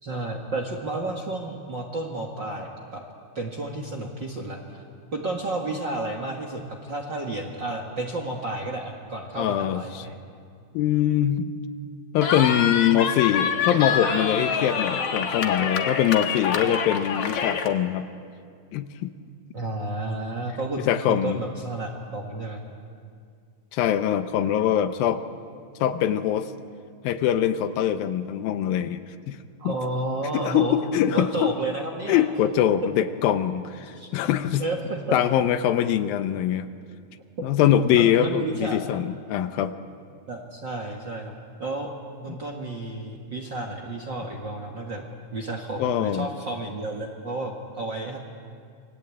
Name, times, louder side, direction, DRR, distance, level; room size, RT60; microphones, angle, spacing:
voice 1, 0.0-3.0 3.3-4.8 5.1-10.2 19.5-22.6 29.6-30.8 31.1-32.2 33.8-34.1 34.6-35.0 37.9-38.8 40.3-41.3 41.6-41.9 42.2-48.2, right 2 dB, 45° right, 2 dB, 1.7 m, -31 dB
voice 2, 9.4-10.1 10.7-11.5 12.1-18.1 18.7-19.1 20.9-21.4 23.7-25.2 25.8-26.5 27.0-29.0 29.3-29.4 29.6-29.7 30.3-31.5 32.1-33.9 34.1-34.7 35.1-36.7 37.4-39.7 45.8-46.3, left 10 dB, 75° left, 10 dB, 2.5 m, -23 dB
Cheering, 12.2-17.7, left 6 dB, 55° left, 1.8 m, -26 dB
27.5 x 21.5 x 8.5 m, 2.3 s
omnidirectional pair, 4.3 m